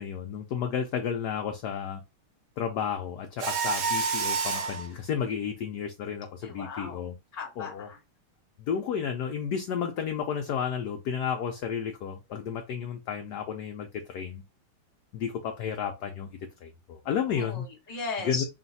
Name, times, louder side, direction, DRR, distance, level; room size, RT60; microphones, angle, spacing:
voice 1, 0.0-2.0 2.6-7.1 7.6-7.9 8.7-14.4 15.1-16.3 16.6-17.7 18.2-18.4, left 7 dB, 70° left, 1.0 m, -32 dB
Mechanisms, 3.4-4.9, right 4 dB, 65° right, 1.5 m, -28 dB
voice 2, 6.4-8.0 17.3-18.4, left 4 dB, 25° left, 1.1 m, -37 dB
3.9 x 2.5 x 3.9 m
omnidirectional pair, 2.2 m